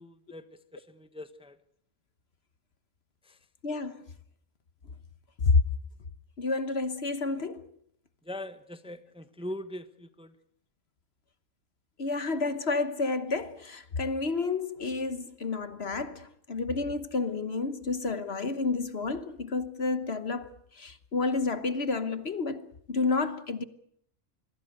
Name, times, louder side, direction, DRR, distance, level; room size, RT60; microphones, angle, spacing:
voice 1, 0.0-1.6 3.2-3.4 8.2-10.3, left 1 dB, 5° right, 1.1 m, -42 dB
voice 2, 3.6-4.0 5.4-5.6 6.4-7.7 12.0-23.6, left 3 dB, 50° left, 1.4 m, -30 dB
26.0 x 21.5 x 6.6 m
omnidirectional pair, 1.5 m